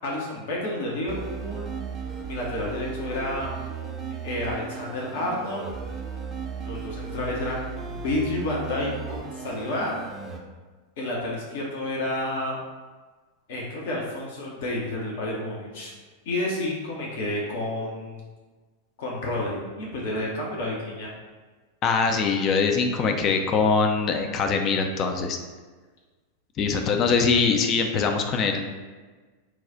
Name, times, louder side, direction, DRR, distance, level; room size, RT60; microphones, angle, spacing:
voice 1, 0.0-1.7 2.2-3.5 4.2-5.7 6.6-10.0 11.0-12.6 13.5-15.9 16.2-18.2 19.0-21.1, left 1 dB, 55° left, -3 dB, 0.8 m, -30 dB
sound 1, 1.1-10.4, right 6 dB, 20° right, 0.6 m, -36 dB
voice 2, 21.8-25.4 26.6-28.6, left 5 dB, 30° left, 4 dB, 0.4 m, -23 dB
4.7 x 2.3 x 3.9 m, 1.3 s
figure-of-eight pair, 90°, 0 cm